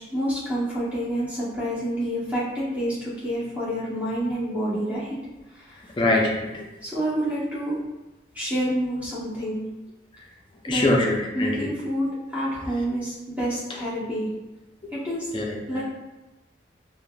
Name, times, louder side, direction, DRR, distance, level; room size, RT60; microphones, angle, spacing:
voice 1, 0.0-5.2 5.5-5.8 6.8-7.8 8.3-9.6 10.7-10.9 11.3-14.3 14.9-15.3 15.7-15.8, equal, 10° right, -9 dB, 0.9 m, -28 dB
voice 2, 6.0-6.7 10.6-11.7 15.3-15.4 15.7-15.8, left 2 dB, 25° left, -1 dB, 0.4 m, -23 dB
3.3 x 2.4 x 2.2 m, 1.1 s
head